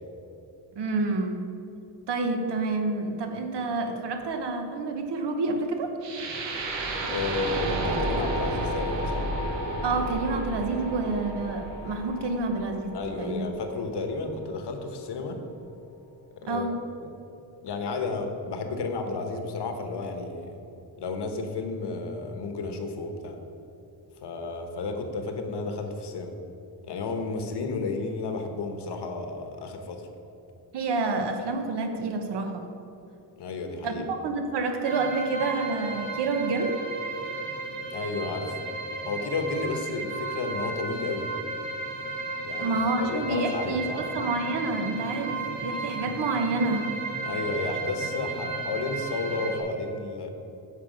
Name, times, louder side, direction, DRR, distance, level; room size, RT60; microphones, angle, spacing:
voice 1, 0.7-1.4 2.1-5.9 9.8-13.5 16.4-16.8 30.7-32.7 33.8-36.8 42.6-47.0, right 3 dB, 70° right, 5 dB, 1.1 m, -28 dB
sound 1, 6.0-14.0, right 1 dB, 90° right, 1.4 m, -32 dB
voice 2, 7.1-9.3 12.9-15.4 16.4-16.7 17.0-17.2 17.6-20.6 21.0-23.4 24.2-26.3 26.8-30.1 33.4-34.0 37.9-38.6 39.1-41.3 42.4-44.0 47.2-50.3, left 3 dB, 70° left, 5 dB, 1.2 m, -32 dB
sound 2, 34.8-49.6, right 3 dB, 45° right, 1.8 m, -34 dB
9.5 x 6.9 x 5.1 m, 2.9 s
wide cardioid pair, 180°, 43 cm